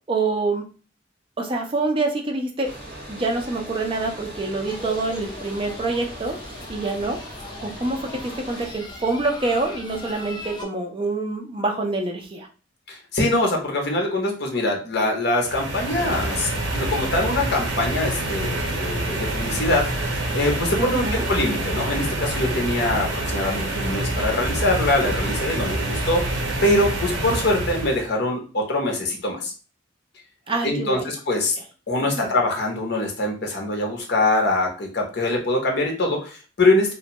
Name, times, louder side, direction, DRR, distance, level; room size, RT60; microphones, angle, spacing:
voice 1, 0.1-0.7 1.4-2.7 3.1-6.4 6.7-7.2 7.6-12.5 20.8-21.3 30.5-31.1 32.2-32.3, right 3 dB, 25° right, 2 dB, 0.5 m, -26 dB
sound 1, 2.6-8.7, right 1 dB, 50° right, 1.1 m, -40 dB
sound 2, 4.7-10.6, left 2 dB, 25° left, 0.5 m, -39 dB
voice 2, 12.9-29.5 30.6-31.6 31.9-36.9, left 2 dB, 60° left, 1 dB, 0.7 m, -23 dB
sound 3, 15.4-28.1, right 2 dB, 70° right, 0.7 m, -26 dB
2.5 x 2.2 x 2.8 m, 0.36 s
head